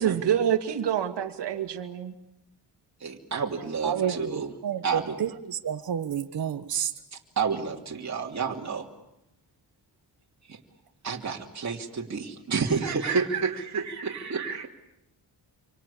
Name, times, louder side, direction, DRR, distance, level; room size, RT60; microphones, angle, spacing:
voice 1, 0.0-2.1, right 9 dB, 80° right, 2.3 m, -26 dB
voice 2, 3.0-4.5 4.8-5.2 7.1-8.9 10.5-10.6 11.0-14.7, right 5 dB, 40° right, 2.9 m, -30 dB
voice 3, 3.8-6.9, right 8 dB, 60° right, 1.3 m, -30 dB
27.5 x 25.0 x 8.5 m
cardioid pair, 95°, 41 cm